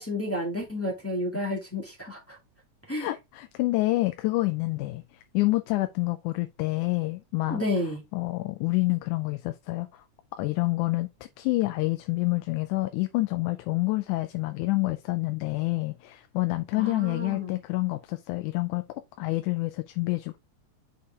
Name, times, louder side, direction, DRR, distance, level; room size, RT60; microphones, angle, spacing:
voice 1, 0.0-2.4 2.9-3.1 7.5-8.0 16.8-17.6, left 1 dB, 5° left, 1.3 m, -31 dB
voice 2, 3.0-5.0 5.3-7.6 8.1-10.0 10.4-11.1 11.4-18.8 19.2-20.4, left 21 dB, 90° left, 2.1 m, -28 dB
6.6 x 4.6 x 3.5 m
omnidirectional pair, 3.5 m